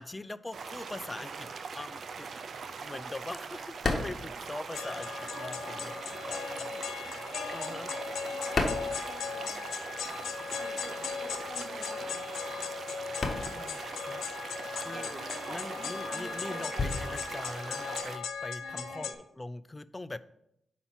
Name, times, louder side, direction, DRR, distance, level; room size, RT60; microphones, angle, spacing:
voice 1, 0.0-2.3 2.6-6.0 6.2-7.9 13.2-14.2 14.8-19.1 19.3-20.3, left 2 dB, 20° left, 15 dB, 0.3 m, -43 dB
sound 1, 0.5-18.2, right 5 dB, 65° right, 0.5 m, -42 dB
sound 2, 3.5-5.4 5.6-9.8 10.0-18.8, left 3 dB, 50° left, 1.1 m, -37 dB
sound 3, 4.7-19.1, left 6 dB, 90° left, 0.5 m, -38 dB
voice 2, 5.3-6.8 7.3-9.6 10.6-12.5 14.9-17.3 18.6-19.2, equal, 45° right, -4 dB, 2.8 m, -46 dB
5.5 x 4.2 x 5.8 m, 0.77 s
cardioid pair, 70°, 0 cm